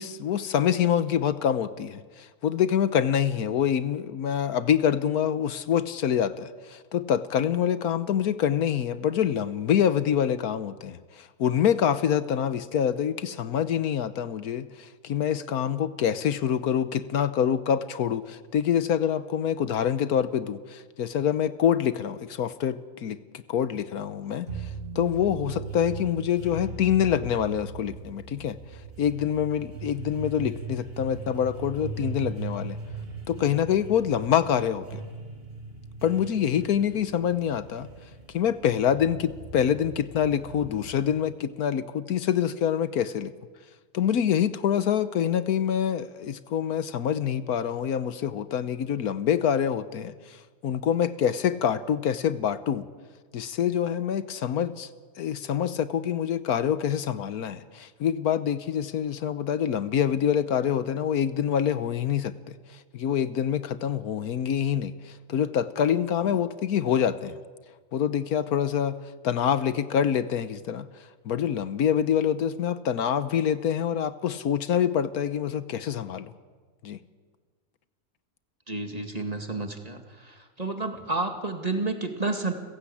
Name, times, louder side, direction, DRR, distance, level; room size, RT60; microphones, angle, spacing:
voice 1, 0.0-24.7 24.9-28.6 29.0-32.8 33.3-35.0 36.0-37.9 38.3-43.3 43.9-50.4 50.6-52.9 53.3-54.9 55.2-62.3 62.9-67.4 67.9-69.0 69.2-70.9 71.2-76.3 76.8-77.0, left 9 dB, 75° left, 13 dB, 1.4 m, -26 dB
sound 1, 24.5-41.3, right 4 dB, 40° right, 2.1 m, -39 dB
voice 2, 78.7-82.5, right 3 dB, 25° right, 5 dB, 2.0 m, -30 dB
29.5 x 16.0 x 8.6 m, 1.5 s
omnidirectional pair, 1.6 m